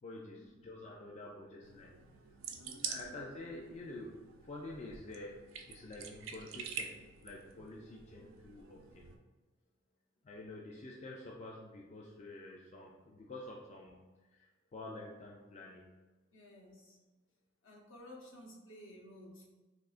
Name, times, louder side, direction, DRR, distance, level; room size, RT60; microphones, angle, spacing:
voice 1, 0.0-2.0 2.8-5.4 5.7-6.9 7.2-9.1 10.2-15.9, left 2 dB, 35° left, -2 dB, 0.3 m, -48 dB
sound 1, 1.6-9.2, right 6 dB, 75° right, 0.4 m, -47 dB
voice 2, 2.5-3.2 16.3-17.0 17.6-19.5, left 1 dB, 65° left, -2 dB, 0.8 m, -54 dB
3.6 x 2.7 x 2.4 m, 1.2 s
head